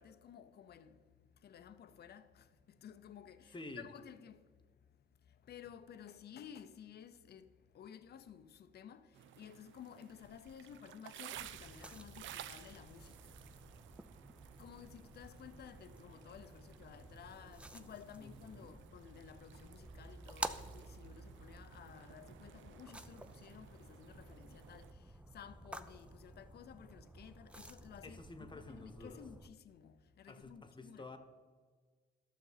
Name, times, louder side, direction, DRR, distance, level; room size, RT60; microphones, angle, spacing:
voice 1, 0.0-4.5 5.3-13.4 14.6-28.2 28.7-31.1, left 8 dB, 55° left, 0.6 m, -55 dB
voice 2, 3.5-3.9 18.2-18.7 28.0-29.2 30.3-31.2, left 2 dB, 25° left, 1.1 m, -50 dB
sound 1, 9.1-24.9, right 11 dB, 75° right, 0.5 m, -56 dB
sound 2, 11.4-29.5, right 1 dB, 5° right, 0.5 m, -51 dB
12.5 x 6.6 x 4.0 m
cardioid pair, 90°, 20 cm